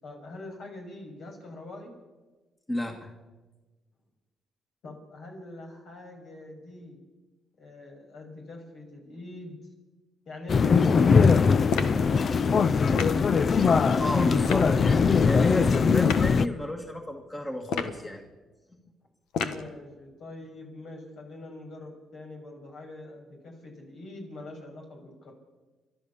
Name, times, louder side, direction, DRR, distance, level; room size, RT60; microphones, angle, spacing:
voice 1, 0.0-1.9 4.8-7.0 7.6-9.6 10.2-13.5 19.4-25.3, left 2 dB, 70° left, 1 dB, 6.5 m, -44 dB
voice 2, 2.7-3.1 14.0-18.2, left 1 dB, 20° left, 3 dB, 2.1 m, -32 dB
sound 1, 10.5-16.5, left 5 dB, 45° left, 0.6 m, -21 dB
sound 2, 11.7-12.0 13.0-13.2 14.4-14.7 16.0-16.3 17.6-18.0 19.3-19.7, left 6 dB, 90° left, 1.3 m, -30 dB
30.0 x 12.5 x 7.1 m, 1.3 s
cardioid pair, 90°, 0 cm